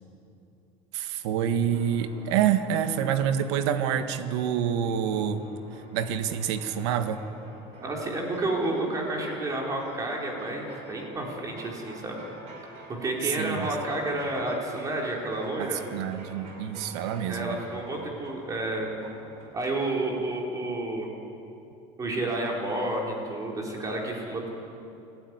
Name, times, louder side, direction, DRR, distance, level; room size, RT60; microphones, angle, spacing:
voice 1, 0.9-5.4 5.9-7.2 13.2-13.7 15.6-17.6, right 9 dB, 85° right, 8 dB, 1.6 m, -27 dB
sound 1, 1.7-19.5, right 2 dB, 55° right, 5.8 m, -48 dB
voice 2, 7.8-12.2 12.9-15.8 17.3-18.9 19.5-21.1 22.0-24.5, right 2 dB, 25° right, -1 dB, 4.2 m, -30 dB
29.5 x 12.5 x 9.7 m, 2.7 s
cardioid pair, 135°, 14 cm